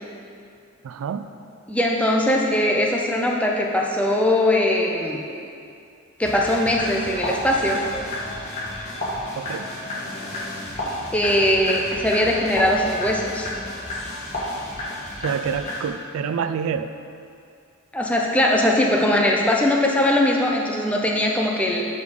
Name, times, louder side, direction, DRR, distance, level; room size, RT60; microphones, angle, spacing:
voice 1, 0.8-1.3 9.4-9.7 15.2-16.9, right 7 dB, 75° right, 10 dB, 0.3 m, -27 dB
voice 2, 1.7-5.2 6.2-7.8 11.1-13.5 17.9-21.9, left 1 dB, 5° left, -1 dB, 0.5 m, -20 dB
sound 1, 6.2-15.9, left 1 dB, 30° left, 1.4 m, -31 dB
6.4 x 5.1 x 5.1 m, 2.5 s
head